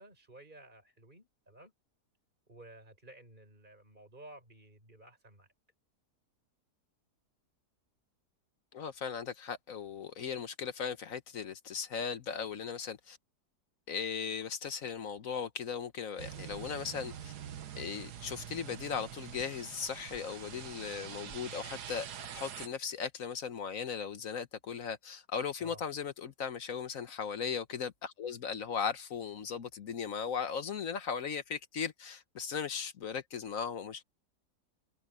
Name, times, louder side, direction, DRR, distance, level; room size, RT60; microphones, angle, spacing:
voice 1, 0.0-1.7 2.5-5.5 25.6-25.8, right 1 dB, 30° right, 6.3 m, -54 dB
voice 2, 8.7-13.2 13.9-17.3 17.8-22.1 22.3-34.0, left 6 dB, 55° left, 1.3 m, -37 dB
sound 1, 16.2-22.7, right 9 dB, 75° right, 1.6 m, -45 dB
omnidirectional pair, 1.8 m